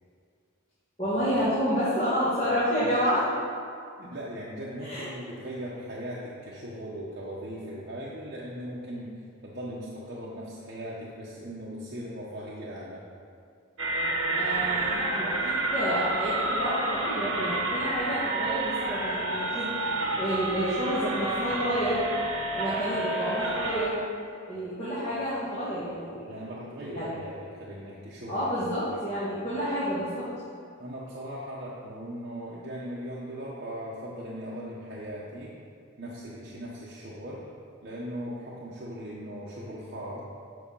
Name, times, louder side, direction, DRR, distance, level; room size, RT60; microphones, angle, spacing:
voice 1, 1.0-3.2 4.8-5.1 14.3-22.0 22.5-24.0 24.4-26.5 26.8-27.1 28.3-30.3, equal, 30° left, -13 dB, 2.5 m, -29 dB
voice 2, 4.0-9.1 9.4-13.0 26.2-29.0 30.8-35.5 36.0-37.4 37.8-40.2, equal, 45° right, -7 dB, 1.2 m, -39 dB
sound 1, 13.8-23.9, right 2 dB, 65° right, 1.3 m, -29 dB
7.9 x 7.0 x 5.6 m, 2.4 s
head